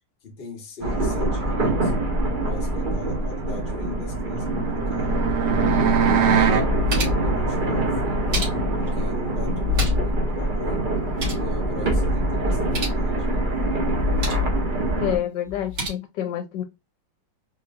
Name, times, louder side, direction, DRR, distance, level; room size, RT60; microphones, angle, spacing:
voice 1, 0.2-2.0 2.4-5.2 5.6-6.5 6.9-8.3 8.8-10.9 11.2-13.5, left 3 dB, 35° left, 1.2 m, -40 dB
sound 1, 0.8-15.2, right 1 dB, 35° right, 0.9 m, -24 dB
sound 2, 4.1-6.7, right 10 dB, 75° right, 1.4 m, -23 dB
sound 3, 6.4-7.3 8.0-8.9 9.5-10.2 10.5-10.6 10.9-11.5 12.5-13.0 13.9-14.5 15.5-15.9, left 5 dB, 50° right, 2.3 m, -28 dB
voice 2, 14.9-16.6, left 10 dB, 80° left, 1.3 m, -28 dB
4.3 x 3.0 x 2.4 m
omnidirectional pair, 1.9 m